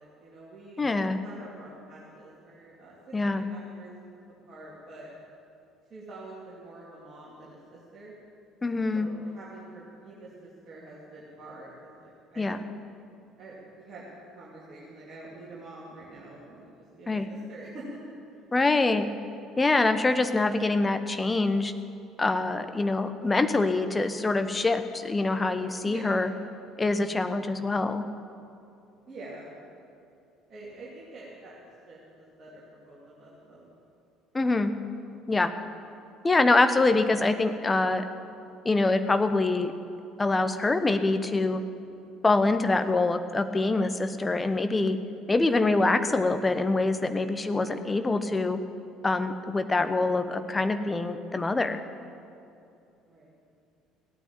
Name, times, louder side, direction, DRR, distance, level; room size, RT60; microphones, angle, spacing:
voice 1, 0.0-4.2 4.5-5.1 5.9-8.1 8.9-12.6 13.4-14.0 14.3-16.7 17.0-18.0 25.9-26.1 29.1-29.5 30.5-31.5 31.9-33.7 53.1-53.3, right 2 dB, 40° right, -7 dB, 2.9 m, -46 dB
voice 2, 0.8-1.2 3.1-3.4 8.6-9.1 12.4-12.6 17.1-17.3 18.5-19.1 19.6-21.7 22.2-26.3 26.8-28.0 34.3-34.7 35.3-35.5 36.2-38.0 38.6-39.7 40.2-41.6 42.2-45.0 45.3-48.6 49.0-51.8, left 3 dB, 20° left, 9 dB, 1.0 m, -25 dB
16.5 x 9.2 x 8.6 m, 2.7 s
figure-of-eight pair, 55°, 0 cm